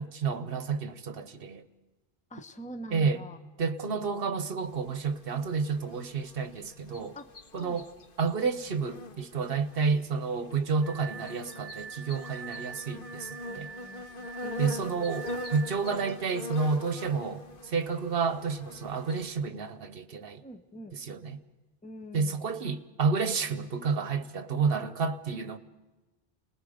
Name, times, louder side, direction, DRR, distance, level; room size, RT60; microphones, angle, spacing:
voice 1, 0.0-1.6 2.9-3.2 3.6-7.2 7.5-7.9 8.2-13.7 14.6-20.4 20.9-21.4 22.1-25.6, right 5 dB, 65° right, 1.1 m, -30 dB
voice 2, 2.3-3.4 3.8-4.4 7.1-7.8 13.4-15.1 20.4-21.0 21.8-22.5, left 1 dB, 10° left, 0.8 m, -45 dB
sound 1, 4.6-19.3, left 1 dB, 60° left, 1.2 m, -43 dB
Glass, 10.8-15.9, right 8 dB, 10° right, 3.5 m, -45 dB
29.0 x 19.5 x 5.0 m
omnidirectional pair, 1.0 m